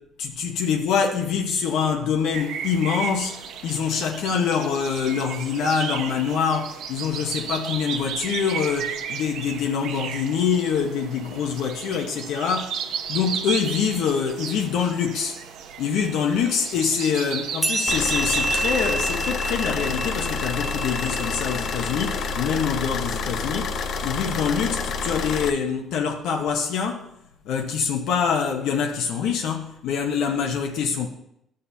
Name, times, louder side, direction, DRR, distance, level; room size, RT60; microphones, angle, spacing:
voice 1, 0.2-15.4 15.8-27.1 27.4-31.1, left 6 dB, 70° left, 0.9 m, -25 dB
sound 1, 2.3-19.3, right 7 dB, 70° right, 0.7 m, -34 dB
sound 2, 17.6-22.5, right 1 dB, 5° right, 0.4 m, -29 dB
sound 3, 17.9-25.5, left 4 dB, 45° left, 0.5 m, -28 dB
14.0 x 6.6 x 2.7 m
cardioid pair, 175°, 0 cm